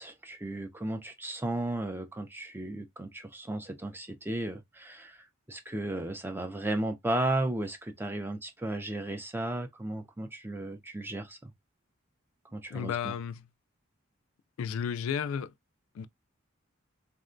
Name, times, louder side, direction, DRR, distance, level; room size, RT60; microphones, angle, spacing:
voice 1, 0.0-11.5 12.5-13.1, right 1 dB, 10° right, 0.4 m, -34 dB
voice 2, 12.7-13.5 14.6-15.5 15.9-16.1, left 7 dB, 85° left, 0.3 m, -33 dB
3.6 x 2.2 x 2.5 m
head